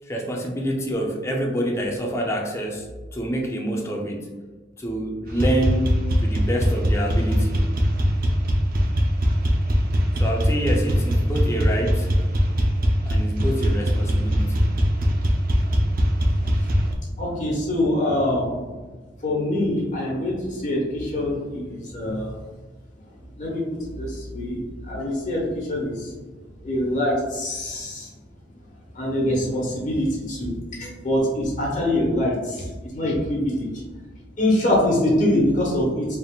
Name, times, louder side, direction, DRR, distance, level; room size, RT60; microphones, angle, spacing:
voice 1, 0.0-2.9 3.1-4.3 4.8-7.7 10.2-12.1 13.0-14.7 29.4-29.8, equal, 15° left, 0 dB, 0.5 m, -27 dB
sound 1, 5.3-16.9, equal, 50° right, 0.6 m, -21 dB
voice 2, 16.4-16.7 17.2-18.6 19.2-22.4 23.4-24.6 24.9-26.1 26.6-28.1 28.9-33.7 34.4-36.2, left 1 dB, 45° left, -4 dB, 1.2 m, -24 dB
4.1 x 3.5 x 2.3 m, 1.3 s
head